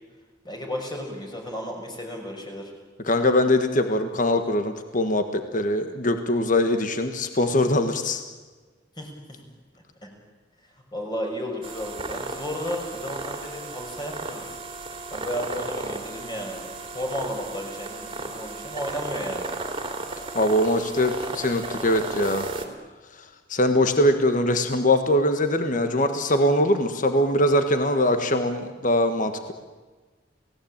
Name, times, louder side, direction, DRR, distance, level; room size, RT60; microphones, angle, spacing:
voice 1, 0.4-2.7 9.0-9.4 10.0-10.1 10.9-14.6 15.1-16.7 16.9-19.5, equal, 25° left, 1 dB, 5.8 m, -33 dB
voice 2, 3.0-8.2 20.3-22.5 23.2-29.5, left 1 dB, 45° left, 7 dB, 1.5 m, -22 dB
sound 1, 11.6-22.7, right 3 dB, 25° right, 2.8 m, -34 dB
29.5 x 18.0 x 8.8 m, 1.3 s
head